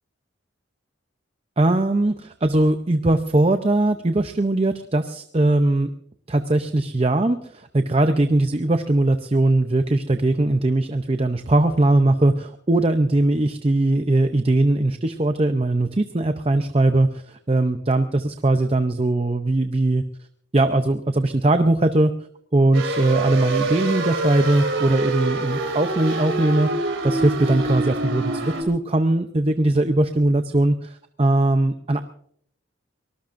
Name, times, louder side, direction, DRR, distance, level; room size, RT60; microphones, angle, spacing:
voice 1, 1.6-5.9 6.3-20.0 20.5-22.1 22.5-32.0, right 2 dB, 30° right, 8 dB, 0.6 m, -20 dB
sound 1, 22.7-28.6, right 2 dB, 90° right, 3.0 m, -26 dB
23.5 x 19.5 x 2.6 m, 0.64 s
head